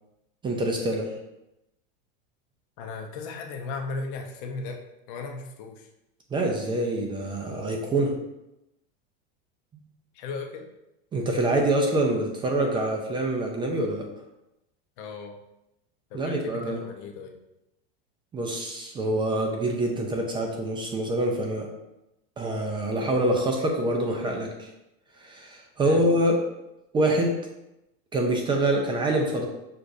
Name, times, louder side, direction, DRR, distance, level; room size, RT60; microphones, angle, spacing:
voice 1, 0.4-1.1 6.3-8.1 11.1-14.1 16.1-16.8 18.3-21.7 22.4-24.7 25.2-26.4 26.9-27.4 28.1-29.5, right 1 dB, 15° right, 1 dB, 0.4 m, -25 dB
voice 2, 2.8-4.8 5.1-5.9 10.1-10.7 15.0-15.4 16.1-17.4 25.8-26.1, left 4 dB, 60° left, 3 dB, 0.7 m, -36 dB
6.5 x 2.5 x 2.6 m, 0.90 s
supercardioid pair, 135°, 29 cm